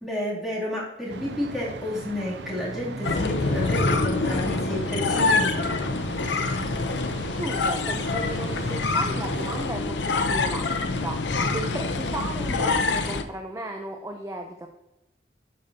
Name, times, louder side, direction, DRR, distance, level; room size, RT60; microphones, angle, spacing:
voice 1, 0.0-5.8, left 1 dB, ahead, -7 dB, 2.7 m, -31 dB
sound 1, 1.1-9.7, right 3 dB, 85° right, 0.6 m, -38 dB
sound 2, 3.0-13.2, left 3 dB, 85° left, 0.6 m, -26 dB
voice 2, 7.4-11.2 11.5-14.7, right 1 dB, 15° right, 3 dB, 0.6 m, -35 dB
11.5 x 5.1 x 2.8 m, 1.0 s
head